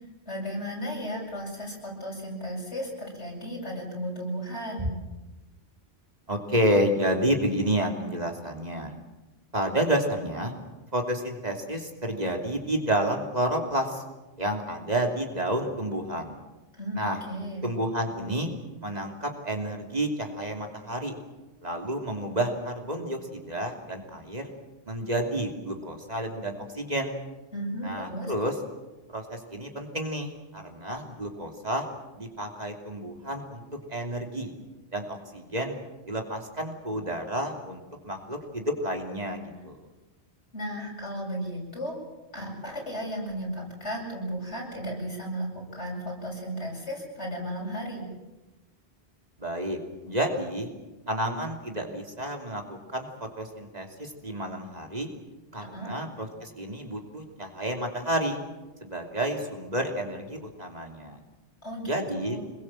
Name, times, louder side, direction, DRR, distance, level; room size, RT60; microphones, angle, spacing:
voice 1, 0.2-4.9 16.8-17.0 17.3-17.6 27.5-28.3 40.5-42.0 42.3-48.1 55.7-55.9 61.6-62.4, equal, 90° left, -2 dB, 8.4 m, -34 dB
voice 2, 6.3-8.9 9.5-10.5 10.9-14.0 14.4-16.4 16.9-17.2 17.6-18.5 18.8-21.1 21.6-24.5 24.8-27.2 27.8-28.5 29.1-31.8 32.2-33.6 33.9-34.5 34.9-35.8 36.1-39.8 49.4-49.8 50.0-50.7 51.1-53.1 53.4-55.1 55.5-58.4 58.8-61.2 61.8-62.4, right 1 dB, 35° right, 2 dB, 3.1 m, -30 dB
26.0 x 21.5 x 7.7 m, 1.1 s
omnidirectional pair, 1.1 m